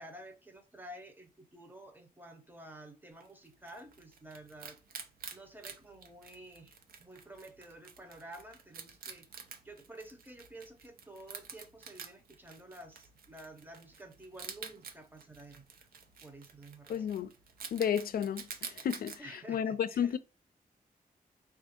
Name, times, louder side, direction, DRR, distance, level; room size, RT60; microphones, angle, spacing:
voice 1, 0.0-4.8 5.3-9.3 9.6-15.6 16.2-17.1 19.2-20.2, right 1 dB, 10° right, 0.7 m, -51 dB
Wild animals, 3.2-19.2, right 6 dB, 75° right, 0.6 m, -49 dB
voice 2, 16.9-17.3 17.7-19.1 19.5-20.2, left 8 dB, 80° left, 0.4 m, -32 dB
3.4 x 2.4 x 4.3 m
wide cardioid pair, 135°, 15 cm